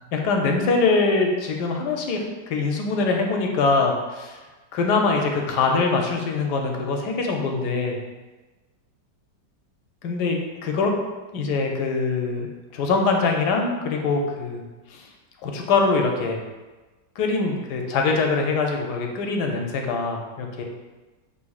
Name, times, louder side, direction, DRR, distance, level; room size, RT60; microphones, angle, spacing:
voice 1, 0.1-4.4 4.7-8.0 10.0-10.9 11.3-14.6 14.9-15.1 15.4-16.4 17.2-20.6, left 4 dB, 75° left, 2 dB, 1.1 m, -23 dB
6.2 x 2.9 x 2.3 m, 1.2 s
omnidirectional pair, 1.9 m